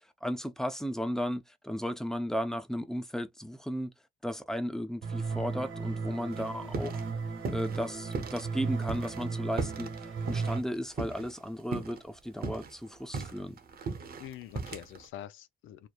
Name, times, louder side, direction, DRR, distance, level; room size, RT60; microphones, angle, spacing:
voice 1, 0.2-3.9 4.2-7.0 7.5-13.6, equal, ahead, 0.5 m, -35 dB
sound 1, 5.0-10.6, right 4 dB, 80° right, 1.2 m, -35 dB
sound 2, 6.3-7.1 7.4-8.5 8.8-11.4 11.7-12.0 12.3-15.1, right 4 dB, 50° right, 0.8 m, -37 dB
voice 2, 6.4-6.7 14.2-15.9, left 11 dB, 85° left, 0.5 m, -45 dB
3.0 x 2.0 x 2.4 m
cardioid pair, 90°, 20 cm